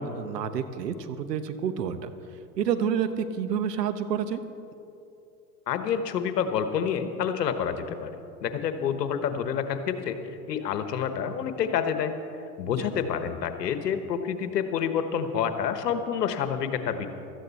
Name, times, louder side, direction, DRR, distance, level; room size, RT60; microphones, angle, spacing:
voice 1, 0.0-2.0 2.6-4.4 12.8-12.9, right 7 dB, 90° right, 10 dB, 1.1 m, -29 dB
voice 2, 5.7-8.1 8.4-10.2 10.5-12.1 12.6-17.1, left 7 dB, 85° left, 9 dB, 1.3 m, -28 dB
16.0 x 13.5 x 4.2 m, 2.7 s
hypercardioid pair, 105°, 47 cm